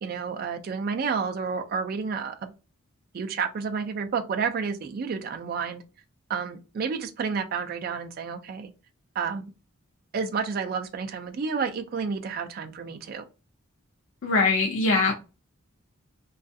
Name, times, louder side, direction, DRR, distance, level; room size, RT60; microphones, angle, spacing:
voice 1, 0.0-2.5 3.1-5.8 6.3-8.7 9.1-9.5 10.1-13.2, right 5 dB, 45° right, 0.3 m, -30 dB
voice 2, 14.2-15.2, left 3 dB, 65° left, 0.4 m, -22 dB
2.3 x 2.3 x 2.5 m
head